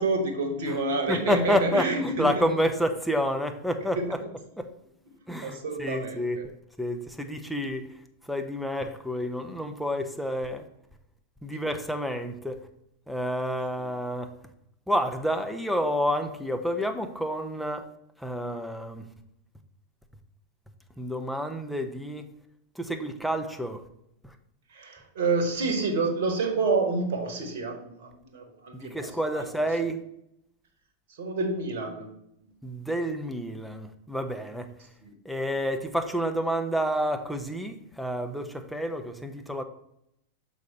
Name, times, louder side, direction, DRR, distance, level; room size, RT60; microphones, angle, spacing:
voice 1, 0.0-2.5 4.0-4.1 5.4-6.4 24.7-28.9 29.3-29.4 31.2-32.1 35.0-35.1, right 3 dB, 55° right, 1.2 m, -28 dB
voice 2, 1.1-4.2 4.6-4.7 5.3-6.5 6.8-8.0 8.3-10.7 11.4-12.7 13.1-14.3 14.9-17.9 18.2-19.1 21.0-22.3 22.8-23.8 24.2-24.3 28.7-30.0 32.6-34.7 35.2-39.6, equal, ahead, 0.7 m, -29 dB
6.4 x 5.2 x 4.1 m
figure-of-eight pair, 90°, 0 cm